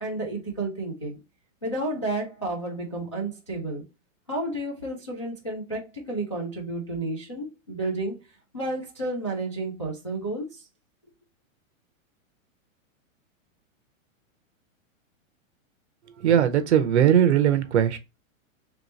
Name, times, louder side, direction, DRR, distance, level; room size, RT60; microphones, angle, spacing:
voice 1, 0.0-1.2 1.6-3.8 4.3-8.2 8.5-10.6, right 2 dB, 25° left, 0.3 m, -31 dB
voice 2, 16.2-18.0, right 9 dB, 55° right, 0.7 m, -19 dB
3.2 x 3.0 x 3.8 m
supercardioid pair, 180°, 40 cm